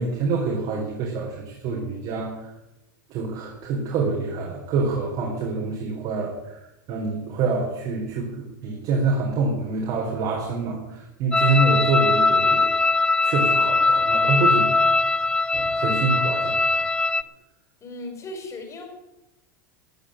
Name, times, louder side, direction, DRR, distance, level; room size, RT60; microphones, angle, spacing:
voice 1, 0.0-2.5 3.1-6.6 6.9-12.7 13.2-14.7 15.5-16.8, right 3 dB, 50° right, -1 dB, 4.1 m, -26 dB
sound 1, 11.3-17.2, left 3 dB, 10° left, 0.4 m, -21 dB
voice 2, 17.8-18.9, left 2 dB, 30° left, 5 dB, 4.4 m, -36 dB
15.0 x 7.5 x 9.1 m, 0.94 s
hypercardioid pair, 110°, 10 cm